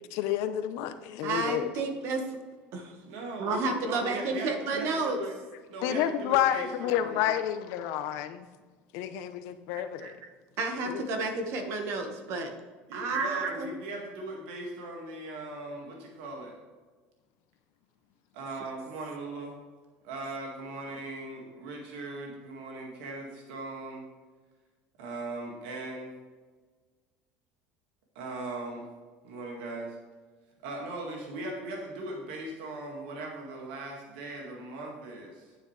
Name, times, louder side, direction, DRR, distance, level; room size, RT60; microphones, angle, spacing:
voice 1, 0.1-1.7 5.8-8.5 8.9-10.1 10.9-11.1, left 11 dB, 75° left, 10 dB, 0.9 m, -29 dB
voice 2, 1.2-2.4 2.7-2.9 3.4-5.2 10.0-10.1 10.6-12.5 12.9-13.7, right 3 dB, 65° right, 5 dB, 1.7 m, -31 dB
voice 3, 3.0-5.3 5.7-7.3 12.9-16.6 18.3-19.6 20.0-24.0 25.0-26.1 28.2-28.9 29.2-30.0 30.6-35.6, right 2 dB, 85° right, 0 dB, 2.1 m, -39 dB
9.5 x 9.1 x 3.4 m, 1.4 s
supercardioid pair, 105°, 5 cm